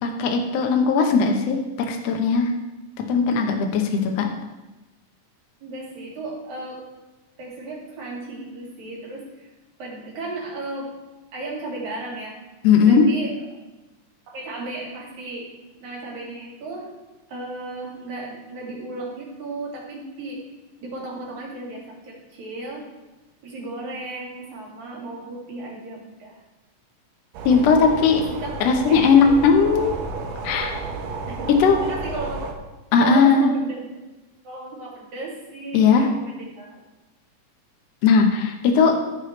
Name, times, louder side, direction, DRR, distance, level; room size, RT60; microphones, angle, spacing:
voice 1, 0.0-1.6 1.9-2.5 3.1-4.3 12.6-13.1 27.5-28.2 28.6-30.0 30.4-30.8 31.5-31.8 32.9-33.5 35.7-36.1 38.0-39.0, left 5 dB, 65° left, 2 dB, 1.8 m, -18 dB
voice 2, 5.6-6.9 7.4-9.5 9.8-11.0 11.3-12.4 12.8-13.5 14.3-16.9 17.3-20.5 20.8-22.9 23.4-26.4 28.1-28.6 28.9-29.1 31.3-31.5 31.8-32.5 33.0-33.8 34.4-35.9 36.1-36.8, right 2 dB, 65° right, -3 dB, 3.6 m, -35 dB
sound 1, 27.3-32.5, right 4 dB, 80° right, 2.6 m, -32 dB
14.0 x 6.6 x 3.2 m, 1.1 s
omnidirectional pair, 3.7 m